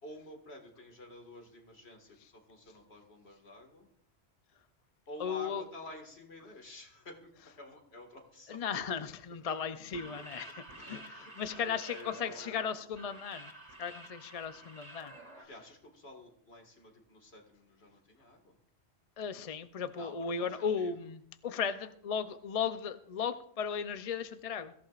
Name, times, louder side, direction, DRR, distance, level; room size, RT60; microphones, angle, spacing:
voice 1, 0.0-3.9 5.1-8.6 8.9-9.0 9.5-10.0 10.4-12.8 15.5-18.6 19.9-21.1, left 1 dB, 70° left, 2.2 m, -50 dB
voice 2, 5.2-5.6 8.5-10.5 10.9-11.0 11.4-13.5 13.8-15.2 19.2-24.7, left 6 dB, 40° left, 0.6 m, -36 dB
sound 1, 9.8-15.4, right 1 dB, 35° right, 2.2 m, -50 dB
23.0 x 14.5 x 2.5 m
omnidirectional pair, 1.1 m